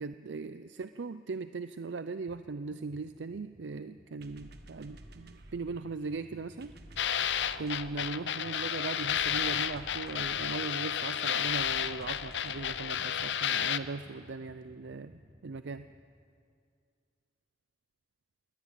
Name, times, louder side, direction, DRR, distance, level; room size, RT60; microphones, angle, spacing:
voice 1, 0.0-6.7 7.6-15.1 15.4-15.9, right 4 dB, 85° right, 11 dB, 0.5 m, -39 dB
sound 1, 2.3-2.4 2.7-16.0, equal, 25° right, 2.3 m, -56 dB
sound 2, 4.2-13.8, right 1 dB, 65° right, 1.5 m, -54 dB
sound 3, 7.0-13.8, left 9 dB, 75° left, 0.7 m, -32 dB
22.5 x 18.5 x 9.0 m, 2.4 s
head